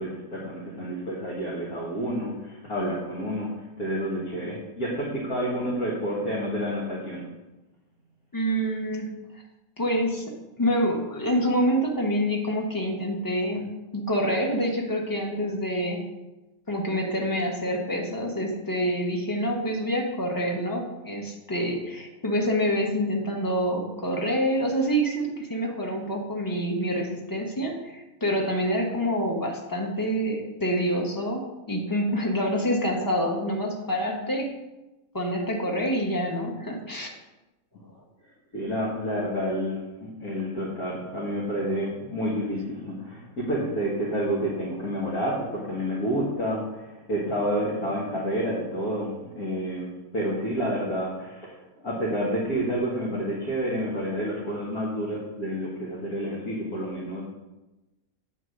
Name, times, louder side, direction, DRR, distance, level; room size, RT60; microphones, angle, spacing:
voice 1, 0.0-3.5 3.8-7.2 38.5-57.2, equal, 80° left, -7 dB, 2.2 m, -29 dB
voice 2, 8.3-9.1 9.8-10.3 10.6-16.1 16.7-34.5 35.1-37.1, equal, 15° left, 0 dB, 1.1 m, -27 dB
9.0 x 4.2 x 6.4 m, 1.0 s
omnidirectional pair, 1.5 m